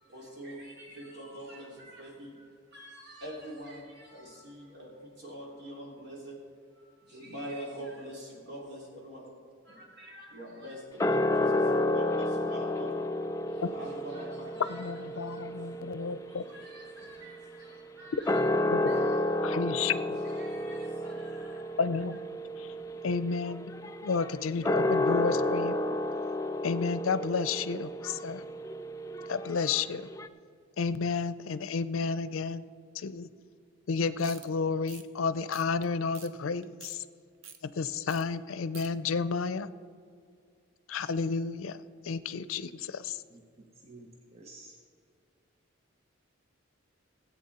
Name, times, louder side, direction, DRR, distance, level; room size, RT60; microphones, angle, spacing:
voice 1, 0.0-6.4 6.8-9.3 9.6-13.0 13.5-18.5 18.8-19.2 20.2-21.6 21.9-22.0, equal, 55° right, -3 dB, 3.0 m, -45 dB
sound 1, 11.0-17.6 18.1-30.3, left 1 dB, 15° left, 0.4 m, -31 dB
voice 2, 14.7-16.4 18.7-18.8 19.4-20.2 21.8-22.2 22.6-22.7 23.0-23.7 24.0-25.7 26.6-28.4 29.3-30.1 30.8-32.6 32.9-33.3 33.9-37.0 37.6-39.7 40.9-43.2, left 5 dB, 90° left, 15 dB, 0.5 m, -31 dB
sound 2, 34.2-34.5 34.8-35.0 35.5-35.8 36.1-36.3 36.6-37.0 37.4-37.6 38.1-38.2 38.5-38.9, right 8 dB, 80° right, 0.8 m, -48 dB
voice 3, 43.3-44.8, right 2 dB, 30° right, 1 dB, 1.1 m, -52 dB
17.5 x 8.3 x 4.2 m, 2.3 s
head